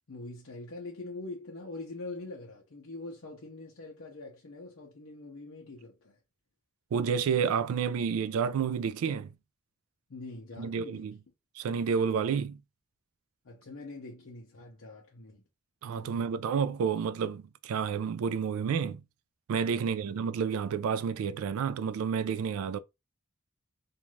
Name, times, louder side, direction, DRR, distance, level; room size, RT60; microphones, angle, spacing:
voice 1, 0.1-6.2 10.1-11.1 13.4-15.4 16.0-16.4 19.6-19.9, left 2 dB, 60° left, 0.6 m, -44 dB
voice 2, 6.9-9.3 10.6-11.2 11.6-12.6 15.8-19.0 19.5-22.8, right 6 dB, 75° right, 0.3 m, -30 dB
2.5 x 2.3 x 3.0 m
head